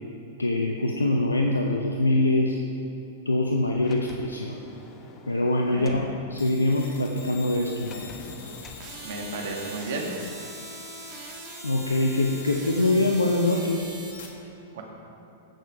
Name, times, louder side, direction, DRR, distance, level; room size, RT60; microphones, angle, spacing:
voice 1, 0.4-2.6 3.3-4.6 5.3-6.0 6.3-8.1 11.6-14.0, left 2 dB, 85° left, 1 dB, 0.7 m, -24 dB
Sliding door, 3.8-6.1 7.8-8.9, left 4 dB, 30° left, 1.1 m, -46 dB
sound 1, 6.4-14.3, left 6 dB, 55° left, 1.5 m, -45 dB
sound 2, 8.8-14.1, right 4 dB, 45° right, 1.9 m, -42 dB
voice 2, 9.0-10.1 14.7-14.8, right 3 dB, 65° right, 1 dB, 2.0 m, -33 dB
15.5 x 6.6 x 4.8 m, 3.0 s
figure-of-eight pair, 100°, 0 cm